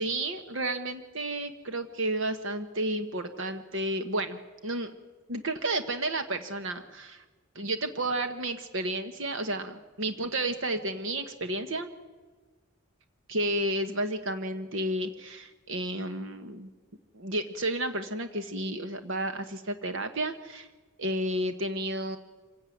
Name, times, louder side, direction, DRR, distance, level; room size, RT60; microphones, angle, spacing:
voice 1, 0.0-4.9 5.3-7.2 7.5-11.9 13.3-16.7 17.1-20.7 21.0-22.2, right 1 dB, 65° right, 8 dB, 1.3 m, -32 dB
26.0 x 16.5 x 9.3 m, 1.4 s
head